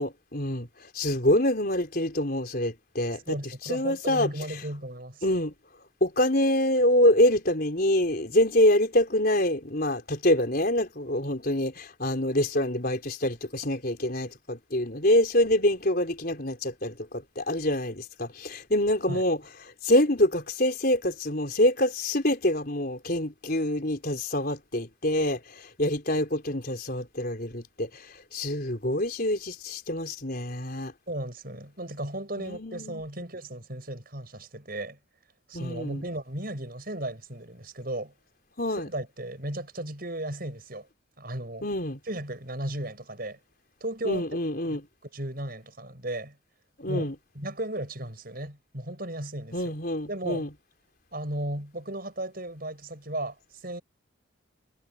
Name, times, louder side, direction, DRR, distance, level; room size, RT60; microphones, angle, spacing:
voice 1, 0.0-3.4 3.6-4.6 5.2-5.5 6.0-30.9 32.4-33.0 35.5-36.0 38.6-38.9 41.6-42.0 44.0-44.8 46.8-47.1 49.5-50.5, left 1 dB, 50° left, 4.5 m, -26 dB
voice 2, 3.3-5.2 19.1-19.2 31.1-35.0 35.5-38.1 38.8-40.9 41.2-41.7 42.1-43.4 43.8-44.3 45.1-46.4 46.9-47.1 47.3-49.7 50.1-50.5 51.1-53.8, right 1 dB, 50° right, 7.5 m, -35 dB
head